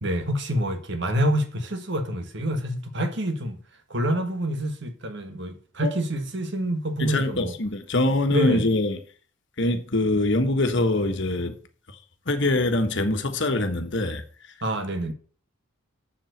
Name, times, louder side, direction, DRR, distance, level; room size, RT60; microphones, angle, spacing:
voice 1, 0.0-3.6 3.9-7.5 8.3-8.7 14.6-15.1, equal, 55° right, 1.6 m, -27 dB
voice 2, 7.0-9.0 9.6-11.6 11.9-12.0 12.3-14.2, left 2 dB, 55° left, 1.4 m, -24 dB
7.5 x 7.2 x 8.0 m
head